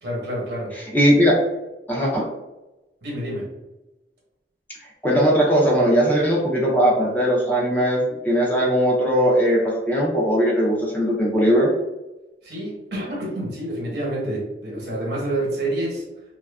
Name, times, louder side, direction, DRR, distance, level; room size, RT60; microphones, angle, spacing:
voice 1, 0.0-0.7 3.0-3.5 12.4-16.0, right 1 dB, 65° right, -3 dB, 1.0 m, -28 dB
voice 2, 0.9-1.3 1.9-2.3 5.0-11.7, equal, 10° left, -4 dB, 0.5 m, -19 dB
2.7 x 2.3 x 2.3 m, 1.0 s
head